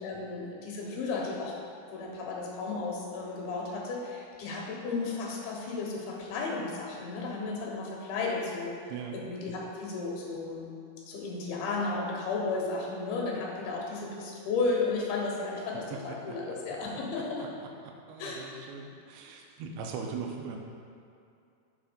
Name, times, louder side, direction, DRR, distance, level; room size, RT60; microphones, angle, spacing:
voice 1, 0.0-1.6 1.9-8.8 9.1-10.7 11.1-17.5 18.2-18.6, left 3 dB, 80° left, -2 dB, 3.0 m, -34 dB
voice 2, 15.9-16.4 16.7-16.8 17.4-17.5 17.8-20.6, right 5 dB, 85° right, 2 dB, 2.5 m, -40 dB
7.3 x 4.3 x 5.0 m, 2.5 s
omnidirectional pair, 4.5 m